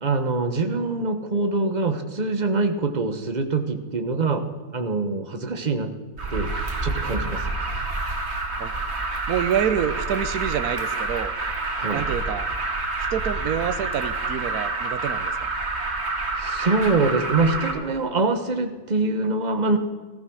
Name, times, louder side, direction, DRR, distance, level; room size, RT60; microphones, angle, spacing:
voice 1, 0.0-4.4 4.7-5.9 6.3-6.5 6.8-7.4 11.8-12.0 16.4-19.8, right 3 dB, 30° right, 7 dB, 1.2 m, -24 dB
Alarm, 6.2-17.7, right 3 dB, 45° right, 2.2 m, -28 dB
voice 2, 9.3-11.3 11.9-12.5 13.1-15.5, right 9 dB, 75° right, 11 dB, 1.3 m, -27 dB
14.5 x 14.0 x 6.3 m, 1.3 s
omnidirectional pair, 1.6 m